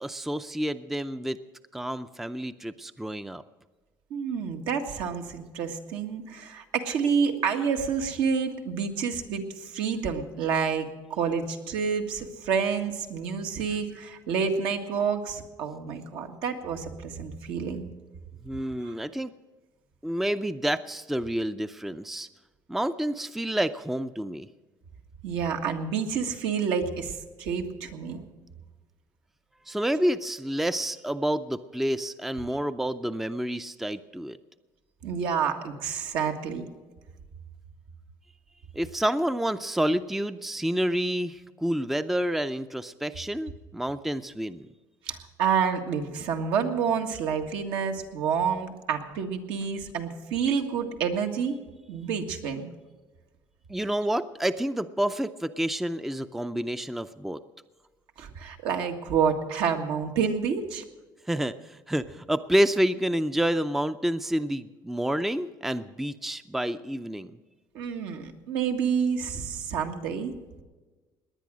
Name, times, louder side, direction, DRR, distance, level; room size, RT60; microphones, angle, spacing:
voice 1, 0.0-1.4 1.7-3.4 18.4-19.3 20.0-22.3 22.7-24.5 29.7-34.4 38.7-44.7 53.7-57.4 61.3-67.4, right 1 dB, 5° right, 12 dB, 0.4 m, -29 dB
voice 2, 4.1-17.9 18.8-18.9 25.2-28.2 35.0-36.7 45.1-51.6 51.9-52.7 58.2-60.8 67.7-70.3, right 6 dB, 80° right, 4 dB, 1.8 m, -29 dB
19.0 x 10.0 x 6.2 m, 1.3 s
cardioid pair, 125°, 9 cm